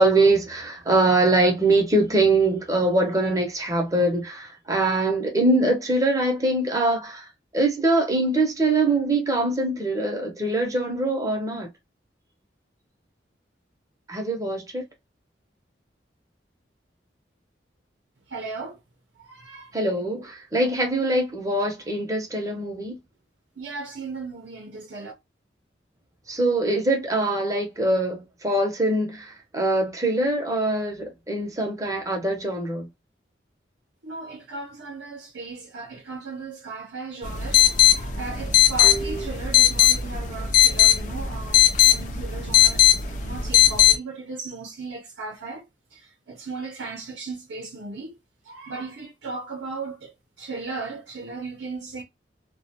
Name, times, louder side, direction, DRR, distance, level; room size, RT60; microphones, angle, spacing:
voice 1, 0.0-7.3 7.5-11.7 14.1-14.8 19.7-23.0 26.3-32.9 38.8-39.3, right 2 dB, 20° right, 0.7 m, -23 dB
voice 2, 18.3-18.8 19.2-19.8 23.6-25.1 34.0-48.2 48.4-52.0, right 3 dB, 80° right, 0.6 m, -36 dB
sound 1, 37.2-44.0, left 11 dB, 45° left, 0.4 m, -19 dB
2.4 x 2.1 x 2.7 m
head